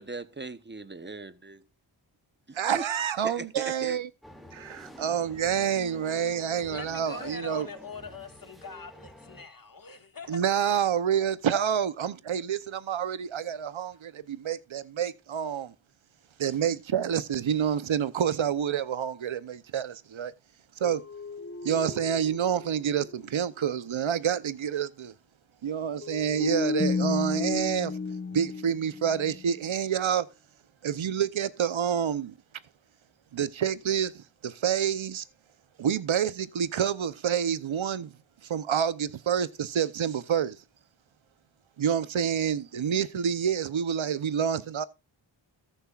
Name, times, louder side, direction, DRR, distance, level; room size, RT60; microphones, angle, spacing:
voice 1, 0.0-1.6 2.5-2.8 3.2-4.0, right 3 dB, 20° right, 0.9 m, -39 dB
voice 2, 2.5-4.1 4.5-7.7 10.3-15.7 16.4-20.3 20.8-21.0 21.6-25.1 25.6-27.9 28.3-30.3 30.8-32.3 33.3-35.2 35.8-38.1 38.4-40.6 41.8-44.8, right 8 dB, 70° right, 0.8 m, -28 dB
sound 1, 4.2-9.5, equal, ahead, 2.4 m, -49 dB
voice 3, 6.7-10.4, left 4 dB, 40° left, 1.9 m, -42 dB
sound 2, 20.8-23.4 23.6-23.7 26.0-29.6, left 4 dB, 25° left, 0.7 m, -33 dB
14.0 x 10.0 x 2.4 m
cardioid pair, 60°, 49 cm